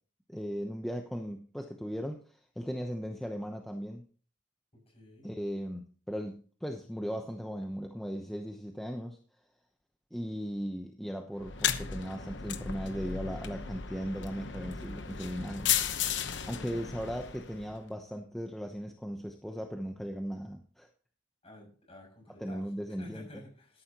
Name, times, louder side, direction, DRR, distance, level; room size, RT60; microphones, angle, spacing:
voice 1, 0.3-4.0 5.2-9.2 10.1-15.7 16.4-20.9 22.4-23.3, equal, ahead, 3 dB, 0.8 m, -37 dB
voice 2, 4.7-5.3 16.4-16.9 21.4-22.6 23.0-23.8, left 1 dB, 30° left, 0 dB, 6.6 m, -52 dB
sound 1, 11.4-17.8, left 8 dB, 65° left, 1.0 m, -35 dB
13.0 x 11.5 x 3.0 m, 0.42 s
head